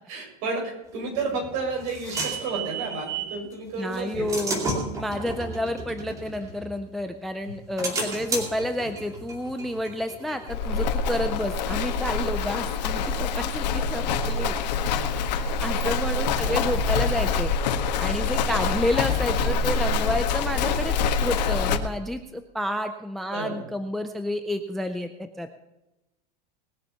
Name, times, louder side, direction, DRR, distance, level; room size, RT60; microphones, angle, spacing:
voice 1, 0.1-4.7 13.2-13.6 14.4-14.5 15.3-15.4 16.4-17.0 19.3-19.5 23.3-23.7, right 4 dB, 50° right, 0 dB, 6.5 m, -32 dB
sound 1, 1.2-3.4 3.9-7.0 7.4-10.9, right 2 dB, 15° right, 2.5 m, -33 dB
voice 2, 3.8-4.6 5.0-14.5 15.6-17.5 18.0-25.5, left 1 dB, ahead, 8 dB, 0.3 m, -30 dB
Livestock farm animals working animals, 10.5-21.8, left 5 dB, 80° left, 1.6 m, -25 dB
20.5 x 7.2 x 5.6 m, 0.94 s
supercardioid pair, 170°, 21 cm